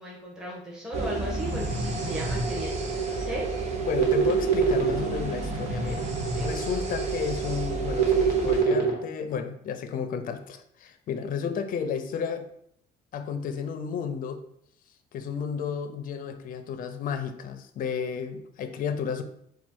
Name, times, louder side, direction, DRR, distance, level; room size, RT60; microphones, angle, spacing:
voice 1, 0.0-3.5 4.2-4.7 6.3-6.5, equal, 5° right, -5 dB, 1.3 m, -37 dB
sound 1, 0.9-8.6, right 2 dB, 40° right, 0.8 m, -35 dB
sound 2, 0.9-8.9, right 5 dB, 75° right, 1.2 m, -27 dB
voice 2, 3.8-6.1 6.4-12.5 13.1-14.4 15.1-19.2, left 7 dB, 55° left, 9 dB, 0.5 m, -32 dB
4.3 x 2.3 x 4.5 m, 0.69 s
cardioid pair, 110°, 17 cm